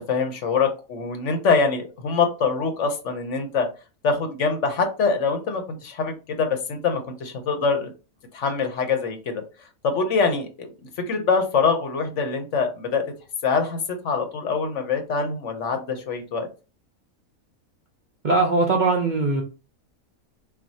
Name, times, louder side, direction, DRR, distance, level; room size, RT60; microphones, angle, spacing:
voice 1, 0.0-3.7 4.0-7.9 8.3-9.3 9.8-13.0 13.4-13.8 14.0-16.5, left 5 dB, 60° left, 6 dB, 1.0 m, -24 dB
voice 2, 18.2-19.4, right 3 dB, 50° right, 0 dB, 0.5 m, -20 dB
5.7 x 2.3 x 2.7 m, 0.32 s
omnidirectional pair, 1.5 m